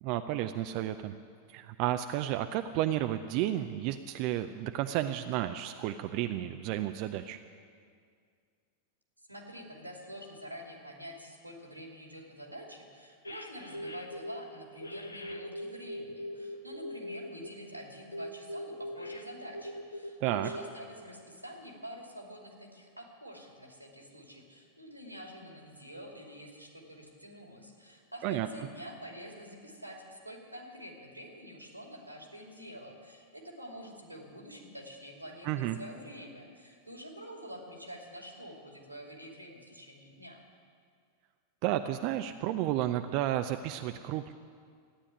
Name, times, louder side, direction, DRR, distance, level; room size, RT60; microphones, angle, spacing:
voice 1, 0.0-1.1 1.5-7.4 20.2-20.5 28.2-28.5 35.4-35.8 41.6-44.3, right 13 dB, 45° right, 8 dB, 0.5 m, -32 dB
voice 2, 9.3-40.4, equal, 90° right, 1 dB, 2.6 m, -47 dB
sound 1, 13.2-14.4 14.8-17.5 18.1-20.1 20.4-20.6, left 1 dB, 80° left, 1.0 m, -41 dB
14.5 x 9.9 x 9.7 m, 2.2 s
figure-of-eight pair, 90°, 0 cm